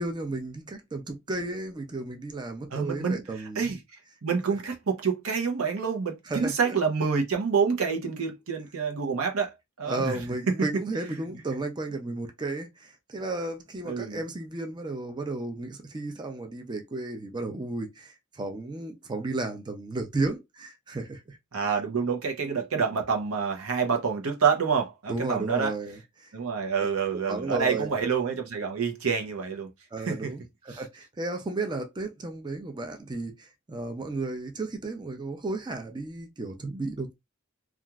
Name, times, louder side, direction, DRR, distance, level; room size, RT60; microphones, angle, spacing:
voice 1, 0.0-3.7 6.3-6.7 9.8-21.4 25.1-26.3 27.1-27.9 29.9-37.1, right 2 dB, 20° right, 0.4 m, -33 dB
voice 2, 2.7-3.2 3.6-3.8 4.2-10.2 10.5-10.6 13.8-14.2 21.5-25.7 26.3-29.7 30.0-30.3 30.7-30.8, right 6 dB, 90° right, 0.8 m, -27 dB
2.9 x 2.4 x 2.3 m
head